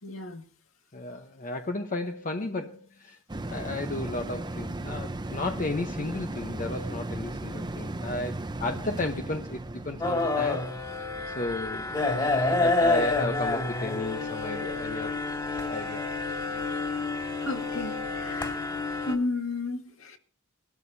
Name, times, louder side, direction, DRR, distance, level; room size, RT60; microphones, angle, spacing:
voice 1, 0.0-0.5 17.4-18.7 19.1-20.2, left 3 dB, 85° left, 1.9 m, -33 dB
voice 2, 0.9-3.2 3.5-10.6 11.3-11.9 12.6-15.2 15.7-16.2, left 2 dB, 40° left, 0.9 m, -33 dB
sound 1, 3.3-14.0 14.4-14.5, right 2 dB, 20° right, 0.7 m, -37 dB
sound 2, 10.0-19.2, left 3 dB, 20° left, 2.3 m, -28 dB
22.0 x 13.0 x 2.7 m
head